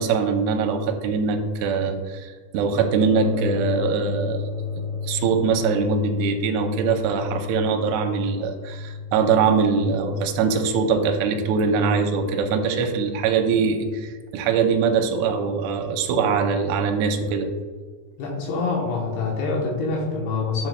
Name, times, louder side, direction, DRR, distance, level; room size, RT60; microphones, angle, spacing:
voice 1, 0.0-4.5 5.0-17.5, right 5 dB, 85° right, 4 dB, 2.7 m, -22 dB
sound 1, 2.9-12.1, left 4 dB, 55° left, 1.3 m, -32 dB
voice 2, 18.2-20.7, left 3 dB, 75° left, -2 dB, 2.8 m, -25 dB
9.2 x 5.9 x 2.2 m, 1.5 s
omnidirectional pair, 5.1 m